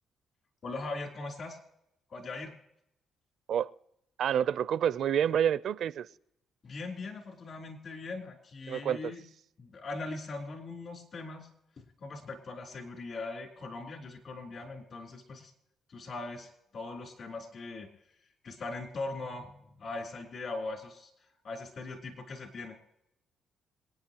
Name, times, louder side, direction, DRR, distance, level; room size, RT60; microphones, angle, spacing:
voice 1, 0.6-1.6 2.1-2.5 6.6-9.2 9.6-11.5 11.8-15.5 15.9-17.9 18.4-21.1 21.4-22.8, left 3 dB, 55° left, 3.8 m, -40 dB
voice 2, 4.2-6.1 8.7-9.1, right 9 dB, 70° right, 0.5 m, -28 dB
27.5 x 9.4 x 3.0 m
cardioid pair, 90°, 0 cm